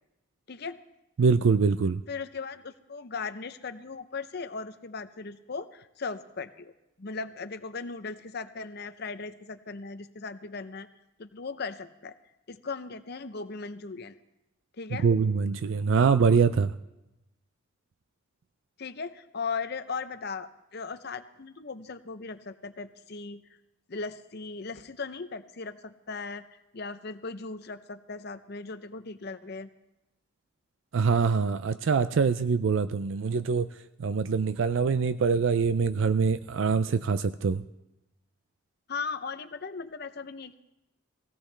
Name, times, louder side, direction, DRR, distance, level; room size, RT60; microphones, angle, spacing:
voice 1, 0.5-0.8 2.1-6.7 7.0-10.9 11.2-12.1 12.5-14.2 14.8-15.1 18.8-23.4 23.9-29.7 38.9-40.5, left 4 dB, 50° left, 10 dB, 0.7 m, -38 dB
voice 2, 1.2-2.0 15.0-16.7 30.9-33.7 34.0-37.6, right 5 dB, 65° right, 13 dB, 0.4 m, -24 dB
19.0 x 17.0 x 3.3 m, 0.95 s
head